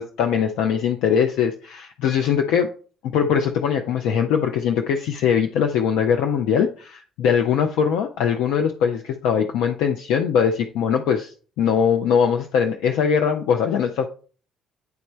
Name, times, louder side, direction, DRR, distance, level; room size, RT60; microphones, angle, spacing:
voice 1, 0.0-2.7 3.1-11.3 11.6-14.1, left 7 dB, 70° left, 4 dB, 0.5 m, -21 dB
9.4 x 3.3 x 4.2 m, 0.40 s
hypercardioid pair, 50°, 0 cm